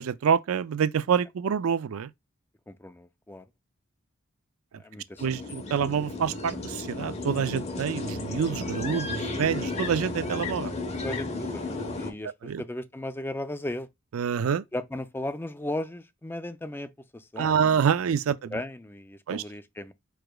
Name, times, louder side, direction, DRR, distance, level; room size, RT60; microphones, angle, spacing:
voice 1, 0.0-2.1 5.2-10.7 12.4-12.6 14.1-14.6 17.4-18.5 19.3-19.4, right 7 dB, 80° right, 0.4 m, -27 dB
voice 2, 2.7-3.5 4.8-5.6 11.0-13.9 14.7-17.9 18.5-19.9, left 1 dB, 10° left, 0.4 m, -36 dB
sound 1, 5.2-12.1, left 2 dB, 30° left, 1.1 m, -33 dB
4.9 x 4.8 x 2.3 m
head